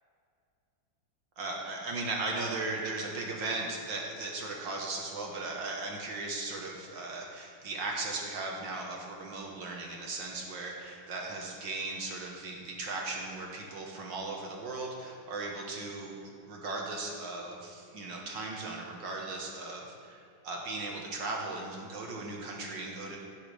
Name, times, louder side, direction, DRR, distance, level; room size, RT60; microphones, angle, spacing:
voice 1, 1.4-16.2 16.5-19.8 20.5-23.2, right 3 dB, 70° right, 0 dB, 2.0 m, -37 dB
16.5 x 11.5 x 3.4 m, 2.5 s
omnidirectional pair, 2.1 m